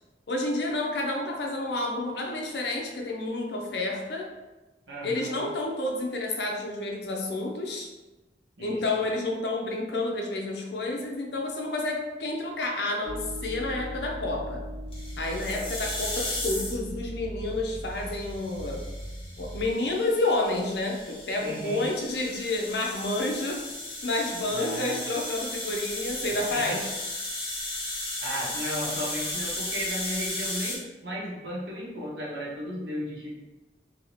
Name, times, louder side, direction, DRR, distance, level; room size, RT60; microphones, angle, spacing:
voice 1, 0.3-4.3 5.0-7.9 8.6-14.6 15.2-18.9 19.4-23.7 24.0-26.9, left 2 dB, 70° left, 1 dB, 0.6 m, -30 dB
voice 2, 4.9-5.4 8.6-8.8 15.3-15.7 21.4-21.9 24.5-25.0 26.3-26.8 28.2-33.4, equal, 85° right, -5 dB, 1.0 m, -35 dB
sound 1, 13.0-19.7, equal, 20° right, 0.8 m, -38 dB
sound 2, 14.9-16.9 18.0-30.8, left 1 dB, 35° left, 1.0 m, -35 dB
2.8 x 2.8 x 3.1 m, 1.1 s
head